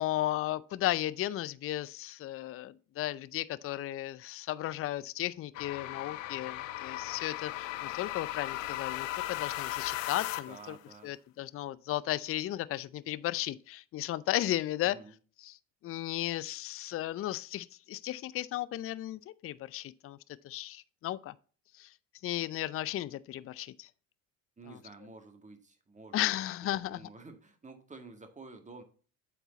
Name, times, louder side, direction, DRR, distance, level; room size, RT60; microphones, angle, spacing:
voice 1, 0.0-10.8 11.0-15.0 15.4-15.6 15.8-20.2 20.4-21.3 21.8-21.9 22.2-23.9 24.7-24.8 26.1-27.0, left 14 dB, 35° left, 0.5 m, -35 dB
sound 1, 5.5-10.7, left 15 dB, 85° left, 0.6 m, -37 dB
voice 2, 10.4-11.2 14.8-15.1 24.6-26.2 26.6-28.8, right 3 dB, 20° right, 1.9 m, -51 dB
8.2 x 4.5 x 4.0 m
hypercardioid pair, 65°, 37 cm